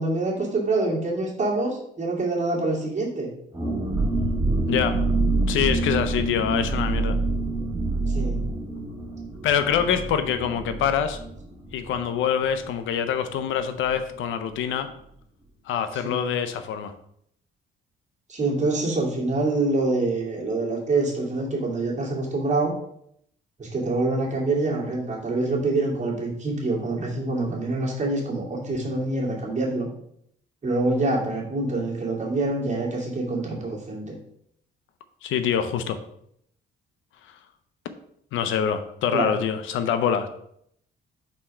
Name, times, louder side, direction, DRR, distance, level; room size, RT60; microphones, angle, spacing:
voice 1, 0.0-3.3 7.9-8.4 16.0-16.2 18.3-22.7 23.6-29.9 30.6-34.2 39.1-39.3, right 2 dB, 35° right, -3 dB, 2.4 m, -26 dB
sound 1, 3.5-13.0 13.2-13.3 13.6-13.9, right 2 dB, 15° right, 1.6 m, -27 dB
voice 2, 4.7-5.0 5.5-7.2 9.4-11.2 11.7-14.9 15.7-16.9 35.2-36.0 38.3-40.3, left 8 dB, 85° left, 10 dB, 0.6 m, -25 dB
4.4 x 4.3 x 5.6 m, 0.71 s
cardioid pair, 90°, 20 cm